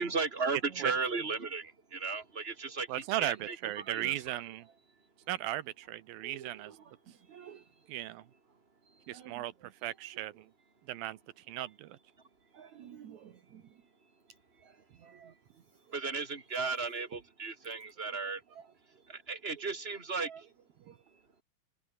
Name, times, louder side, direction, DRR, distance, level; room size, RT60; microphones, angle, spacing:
voice 1, 0.0-4.4 15.9-18.4 19.1-20.5, right 4 dB, 15° right, 3.7 m, -35 dB
voice 2, 2.9-4.7 5.3-6.7 7.9-8.2 9.1-9.5 9.8-10.5 10.9-12.0, right 14 dB, 85° right, 2.8 m, -36 dB
voice 3, 6.2-6.9 7.3-7.6 8.9-9.4 12.5-13.6 14.6-15.4 18.5-18.7 20.2-20.4 20.9-21.0, right 9 dB, 60° right, 2.8 m, -51 dB
omnidirectional pair, 4.1 m